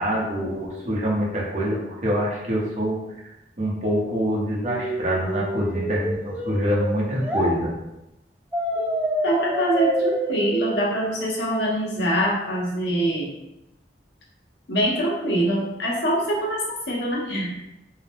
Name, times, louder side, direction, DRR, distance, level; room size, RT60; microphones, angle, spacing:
voice 1, 0.0-3.0 3.6-7.7, equal, 40° right, -4 dB, 0.7 m, -25 dB
sound 1, 4.7-7.5 8.5-11.5, equal, 10° right, 0.3 m, -28 dB
voice 2, 9.2-13.3 14.7-17.6, right 1 dB, 70° left, -3 dB, 0.7 m, -24 dB
2.7 x 2.0 x 3.2 m, 0.91 s
head